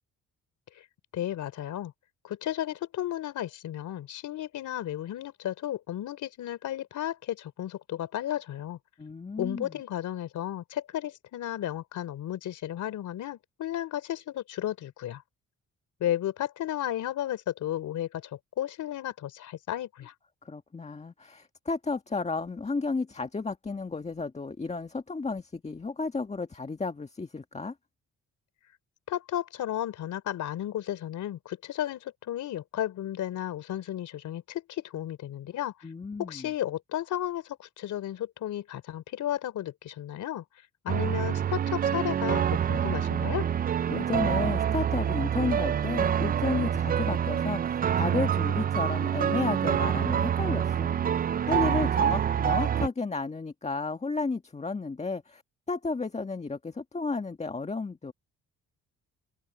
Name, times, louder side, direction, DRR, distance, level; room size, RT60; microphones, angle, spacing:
voice 1, 1.1-1.9 2.2-8.8 9.4-15.2 16.0-18.3 18.6-20.1 29.1-35.7 36.2-40.4 40.8-43.5, left 12 dB, 75° left, 3.7 m, -33 dB
voice 2, 9.0-9.7 20.4-27.7 35.8-36.5 43.9-51.1 51.5-55.4 55.7-58.1, left 3 dB, 20° left, 1.7 m, -32 dB
sound 1, 40.9-52.9, right 9 dB, 30° right, 0.4 m, -26 dB
open air
cardioid pair, 90°, 30 cm